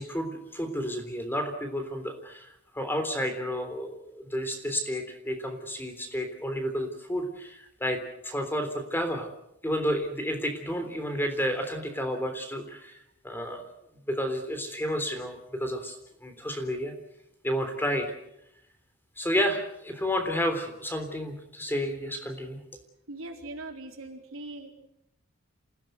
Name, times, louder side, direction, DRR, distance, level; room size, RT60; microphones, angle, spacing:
voice 1, 0.0-9.3 9.6-13.0 13.2-13.7 14.1-16.9 17.4-18.1 19.2-22.6, equal, 10° left, 6 dB, 3.5 m, -31 dB
voice 2, 23.1-24.7, right 2 dB, 85° right, 2 dB, 4.1 m, -40 dB
28.0 x 16.5 x 8.0 m, 0.80 s
head